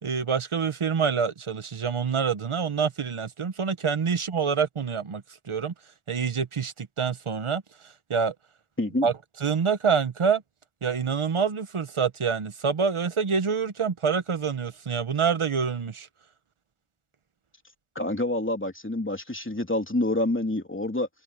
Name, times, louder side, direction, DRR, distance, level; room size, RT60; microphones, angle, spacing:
voice 1, 0.0-5.7 6.1-7.6 8.1-8.3 9.0-9.1 9.4-10.4 10.8-16.1, right 6 dB, 80° right, 1.2 m, -26 dB
voice 2, 8.8-9.1 17.9-21.1, left 1 dB, 25° left, 3.0 m, -27 dB
wide cardioid pair, 45°, 49 cm